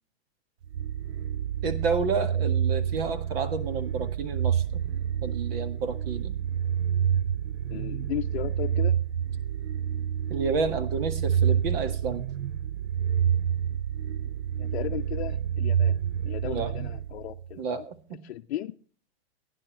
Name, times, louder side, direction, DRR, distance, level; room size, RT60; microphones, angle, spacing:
sound 1, 0.7-17.5, right 8 dB, 85° right, 0.5 m, -28 dB
voice 1, 1.6-4.8 5.2-6.4 10.3-12.2 16.4-16.7 17.6-18.2, right 4 dB, 60° right, 10 dB, 1.8 m, -30 dB
voice 2, 7.7-9.0 14.6-16.0 16.2-17.9 18.2-18.8, left 13 dB, 70° left, 3 dB, 0.6 m, -35 dB
16.5 x 10.0 x 3.1 m, 0.41 s
hypercardioid pair, 140°, 33 cm